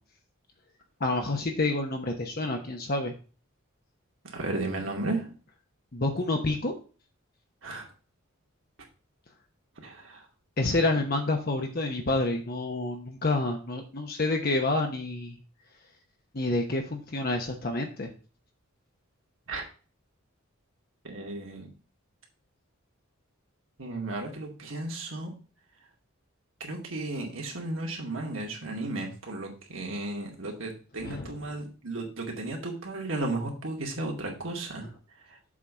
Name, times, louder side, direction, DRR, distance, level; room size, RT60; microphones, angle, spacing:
voice 1, 1.0-3.1 5.9-6.7 10.6-15.4 16.3-18.1 31.0-31.5 34.8-34.9, left 2 dB, 45° left, 3 dB, 1.0 m, -28 dB
voice 2, 4.3-5.3 7.6-7.9 9.8-10.2 19.5-19.7 21.0-21.7 23.8-25.3 26.6-34.9, right 2 dB, 65° right, 1 dB, 2.3 m, -34 dB
7.3 x 4.2 x 6.1 m, 0.37 s
head